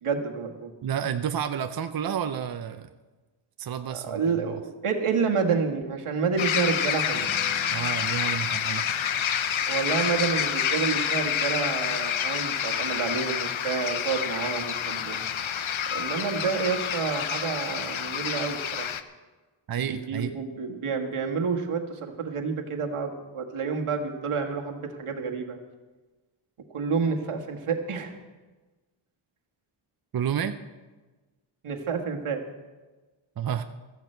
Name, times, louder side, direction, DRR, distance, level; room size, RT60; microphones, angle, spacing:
voice 1, 0.0-0.7 3.9-7.3 9.7-15.2 15.9-18.9 19.8-25.6 26.7-28.1 31.6-32.4, right 5 dB, 90° right, 2 dB, 1.7 m, -29 dB
voice 2, 0.8-2.9 3.6-4.2 7.7-9.0 19.7-20.4 30.1-30.6 33.4-33.6, right 8 dB, 45° right, 8 dB, 0.6 m, -30 dB
sound 1, 6.4-19.0, left 8 dB, 70° left, 0.8 m, -28 dB
Strum, 7.1-13.4, right 1 dB, 10° right, 4.2 m, -49 dB
16.0 x 14.0 x 4.5 m, 1.2 s
wide cardioid pair, 145°, 49 cm